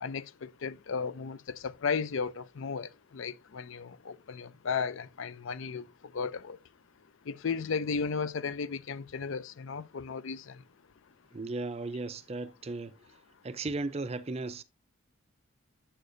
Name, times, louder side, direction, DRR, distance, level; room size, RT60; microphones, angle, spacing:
voice 1, 0.0-5.8 6.1-6.6 7.3-10.4, left 5 dB, 65° left, 0.5 m, -35 dB
voice 2, 11.3-13.0 13.4-14.6, right 3 dB, 30° right, 0.4 m, -36 dB
7.6 x 6.6 x 2.6 m
head